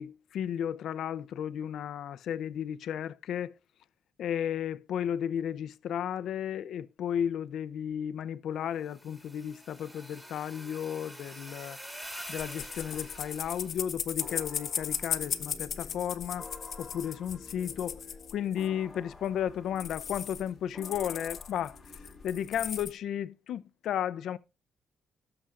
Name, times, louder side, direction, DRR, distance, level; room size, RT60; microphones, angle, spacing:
voice 1, 0.0-3.5 4.2-11.8 12.3-16.5 16.8-18.0 18.3-24.4, left 9 dB, 70° left, 0.6 m, -34 dB
sound 1, 8.9-13.8, equal, 5° right, 2.2 m, -46 dB
sound 2, 12.3-18.7 19.1-19.2 19.5-19.6 19.8-20.5 20.8-22.9, left 8 dB, 50° left, 1.1 m, -37 dB
sound 3, 14.2-22.9, left 2 dB, 15° left, 1.3 m, -51 dB
17.5 x 7.0 x 2.5 m
cardioid pair, 140°, 0 cm